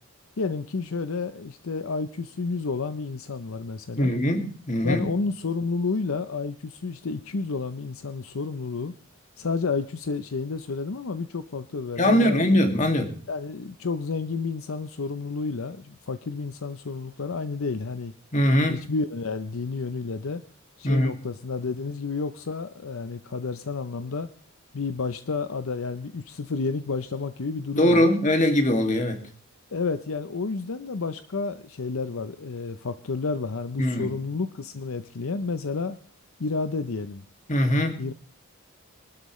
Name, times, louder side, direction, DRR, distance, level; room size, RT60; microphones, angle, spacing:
voice 1, 0.4-4.1 4.8-8.9 9.4-12.4 13.3-18.1 18.7-20.4 20.8-24.3 24.7-28.1 29.7-36.0 36.4-37.2 38.0-38.1, left 4 dB, 70° left, 10 dB, 0.7 m, -30 dB
voice 2, 4.0-5.1 12.0-13.1 18.3-18.8 20.8-21.1 27.8-29.2 33.8-34.1 37.5-38.0, left 1 dB, 35° left, 4 dB, 2.2 m, -21 dB
23.0 x 12.5 x 3.2 m, 0.43 s
head